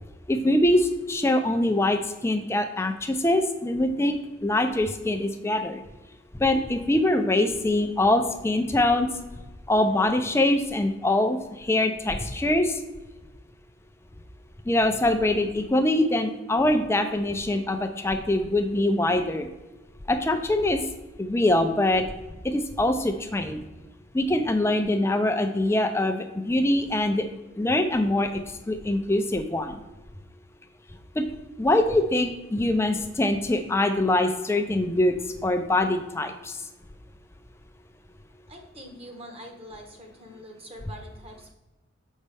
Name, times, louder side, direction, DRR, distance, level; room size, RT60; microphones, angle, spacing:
voice 1, 0.3-5.8 6.3-9.1 9.7-12.8 14.7-19.5 20.1-20.8 21.2-22.0 22.4-23.6 24.1-27.3 27.6-29.8 31.1-31.2 31.6-36.6, left 1 dB, 15° left, 6 dB, 0.4 m, -24 dB
voice 2, 38.5-41.5, equal, 30° right, 2 dB, 1.1 m, -44 dB
7.2 x 5.4 x 3.3 m, 1.1 s
head